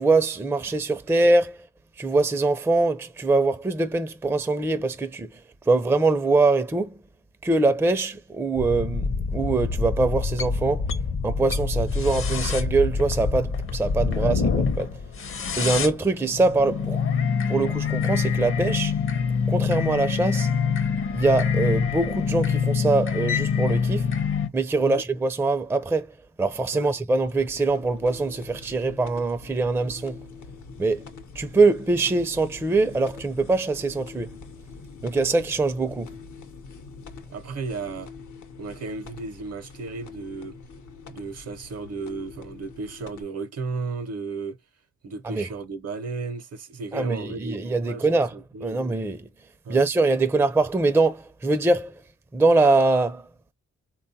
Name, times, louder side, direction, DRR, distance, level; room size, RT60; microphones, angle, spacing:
voice 1, 0.0-1.7 2.0-5.4 5.7-7.0 7.4-10.9 11.2-15.0 15.6-17.0 17.5-18.9 19.5-20.5 21.1-24.1 24.5-26.1 26.4-30.2 30.8-31.1 31.4-34.3 35.0-36.1 45.2-45.5 46.9-48.4 48.6-49.3 49.7-52.0 52.3-53.5, right 3 dB, 10° right, 0.4 m, -23 dB
sound 1, 8.6-24.5, left 5 dB, 45° left, 0.6 m, -25 dB
voice 2, 14.1-14.4 24.8-25.0 26.7-26.9 37.3-38.1 38.6-40.6 41.1-44.6 45.0-48.0 48.3-48.8 49.6-49.8, right 4 dB, 55° right, 0.7 m, -34 dB
sound 2, 27.2-43.2, left 4 dB, 80° left, 0.8 m, -44 dB
3.5 x 2.3 x 2.7 m
cardioid pair, 70°, 30 cm